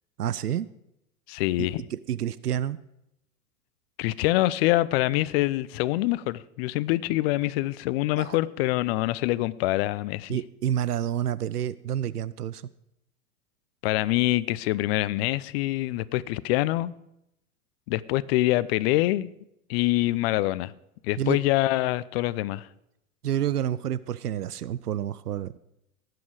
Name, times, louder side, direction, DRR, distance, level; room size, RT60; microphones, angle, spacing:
voice 1, 0.2-0.7 1.6-2.8 8.2-8.4 10.3-12.6 21.2-21.4 23.2-25.5, right 10 dB, 85° right, 18 dB, 0.6 m, -29 dB
voice 2, 1.3-1.8 4.0-10.4 13.8-16.9 17.9-19.3 19.7-20.7 21.0-22.7, left 17 dB, 45° left, 18 dB, 0.6 m, -25 dB
18.5 x 7.9 x 4.8 m, 0.82 s
hypercardioid pair, 100°, 45 cm